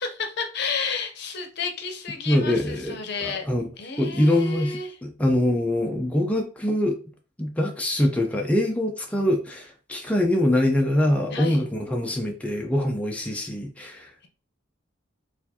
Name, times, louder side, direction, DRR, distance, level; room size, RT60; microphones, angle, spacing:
voice 1, 0.0-3.5 3.8-5.0 11.3-11.7, left 5 dB, 60° left, 5 dB, 0.7 m, -31 dB
voice 2, 2.3-3.0 3.2-3.7 4.0-7.0 7.4-14.3, left 1 dB, 5° left, 1 dB, 0.4 m, -24 dB
4.3 x 2.5 x 2.8 m, 0.37 s
head